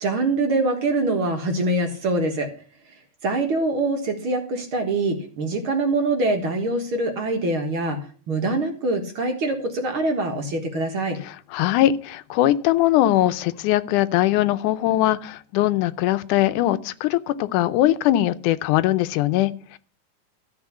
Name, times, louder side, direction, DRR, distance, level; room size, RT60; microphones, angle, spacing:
voice 1, 0.0-2.5 3.2-8.0 8.3-11.2, right 2 dB, 50° right, 3 dB, 2.0 m, -24 dB
voice 2, 11.2-19.8, left 14 dB, 90° left, 13 dB, 2.2 m, -21 dB
13.5 x 4.8 x 8.3 m, 0.42 s
omnidirectional pair, 3.5 m